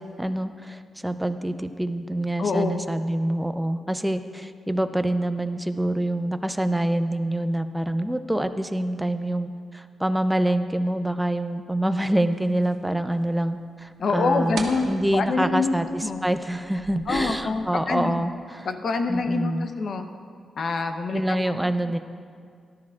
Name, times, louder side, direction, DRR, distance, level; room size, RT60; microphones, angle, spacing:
voice 1, 0.0-18.7 19.1-19.7 21.1-22.0, right 1 dB, 5° right, 9 dB, 0.5 m, -26 dB
voice 2, 2.4-2.8 14.0-15.7 16.0-16.2 17.1-18.2 18.6-20.1 20.6-21.5, left 4 dB, 50° left, 6 dB, 0.8 m, -26 dB
sound 1, 12.3-17.6, right 3 dB, 70° right, 1.5 m, -42 dB
18.0 x 12.5 x 2.4 m, 2.2 s
wide cardioid pair, 150°, 0 cm